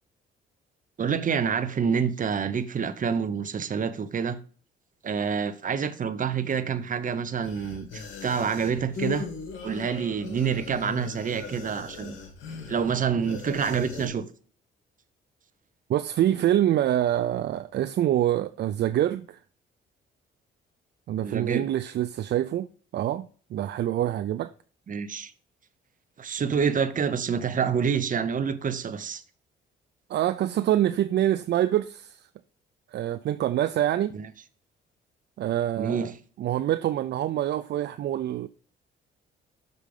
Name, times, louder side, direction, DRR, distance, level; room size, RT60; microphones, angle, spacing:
voice 1, 1.0-4.4 5.0-9.3 9.6-12.2 12.7-14.2 21.2-21.7 24.9-25.3 26.2-29.2 34.1-34.3 35.8-36.1, right 6 dB, 40° right, 0.9 m, -27 dB
sound 1, 7.4-14.1, left 5 dB, 75° left, 2.6 m, -39 dB
voice 2, 15.9-19.4 21.1-24.5 30.1-32.2 32.9-34.1 35.4-36.1 36.4-38.5, right 12 dB, 60° right, 0.5 m, -26 dB
6.6 x 5.3 x 4.9 m
cardioid pair, 90°, 20 cm